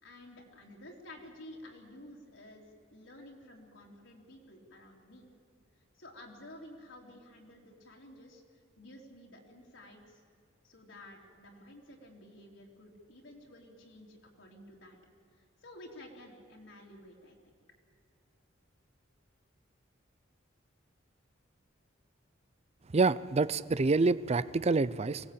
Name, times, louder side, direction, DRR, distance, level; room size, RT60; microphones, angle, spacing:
voice 1, 0.0-5.3 6.0-10.2 10.6-15.0 15.3-17.5, left 1 dB, 70° left, -1 dB, 3.6 m, -52 dB
voice 2, 22.9-25.3, right 3 dB, 30° right, 17 dB, 0.5 m, -27 dB
24.0 x 18.0 x 8.6 m, 2.3 s
head